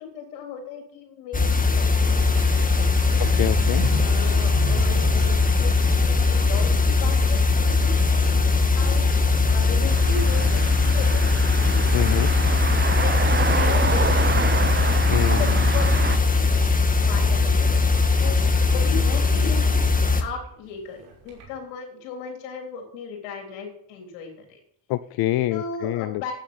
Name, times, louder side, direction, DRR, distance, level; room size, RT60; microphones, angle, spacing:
voice 1, 0.0-3.2 4.0-9.1 9.5-11.2 11.6-13.2 13.4-14.8 15.3-16.8 17.0-17.8 18.2-18.4 18.7-24.6 25.5-26.3, left 5 dB, 80° left, 2 dB, 3.8 m, -36 dB
sound 1, 1.3-20.2, left 4 dB, 20° left, 1.8 m, -20 dB
Vehicle / Accelerating revving vroom, 2.3-21.6, right 6 dB, 85° right, 3.7 m, -39 dB
voice 2, 3.2-3.8 11.9-12.3 15.1-15.5 24.9-26.3, left 16 dB, 65° left, 14 dB, 0.6 m, -26 dB
sound 2, 9.9-16.2, right 5 dB, 25° right, 1.1 m, -28 dB
9.2 x 9.1 x 7.2 m, 0.68 s
hypercardioid pair, 55°, 42 cm